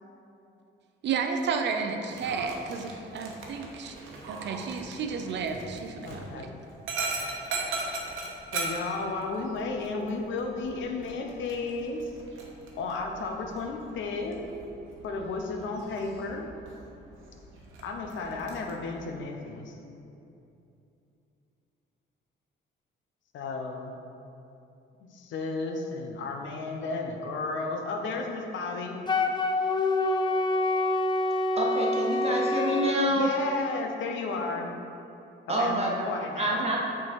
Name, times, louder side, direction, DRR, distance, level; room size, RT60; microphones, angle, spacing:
voice 1, 1.0-3.9 4.3-6.5, right 5 dB, 65° right, 5 dB, 0.5 m, -32 dB
Dog, 2.1-18.7, right 3 dB, 85° right, 0.9 m, -40 dB
voice 2, 6.0-6.7 8.5-12.1 12.8-14.4 15.0-16.5 17.8-19.8 23.3-23.9 25.0-29.0 33.1-34.7 35.6-36.6, left 3 dB, 75° left, 3 dB, 0.7 m, -33 dB
Wind instrument woodwind instrument, 29.1-33.0, left 2 dB, 20° left, 0.4 m, -26 dB
voice 3, 31.6-33.3 35.5-36.1 36.4-36.8, right 1 dB, 30° right, -2 dB, 1.2 m, -27 dB
6.3 x 3.8 x 4.5 m, 2.8 s
cardioid pair, 90°, 20 cm